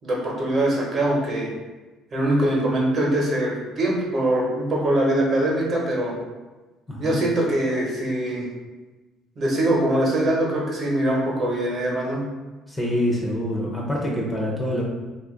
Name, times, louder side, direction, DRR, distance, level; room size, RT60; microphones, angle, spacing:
voice 1, 0.0-1.5 2.1-6.1 7.0-8.5 9.4-12.3, right 1 dB, 40° right, -3 dB, 0.9 m, -23 dB
voice 2, 6.9-7.2 12.7-14.8, left 1 dB, 10° left, -3 dB, 0.5 m, -25 dB
2.6 x 2.4 x 3.7 m, 1.2 s
cardioid pair, 135°, 0 cm